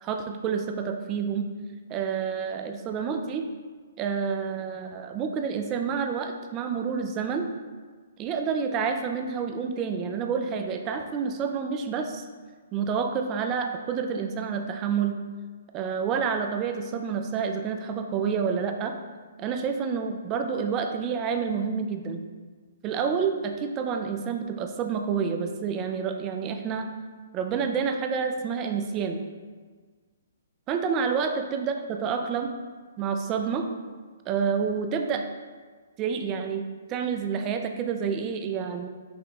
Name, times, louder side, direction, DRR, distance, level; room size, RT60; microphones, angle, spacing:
voice 1, 0.0-1.5 1.9-3.5 4.0-7.5 8.2-12.2 12.7-15.2 15.7-19.0 19.4-22.3 22.8-26.9 27.3-29.2 30.7-32.5 33.0-33.7 34.3-35.2 36.0-36.6 36.9-38.9, right 6 dB, 25° right, 5 dB, 0.3 m, -28 dB
5.5 x 2.2 x 4.0 m, 1.5 s
hypercardioid pair, 150°, 0 cm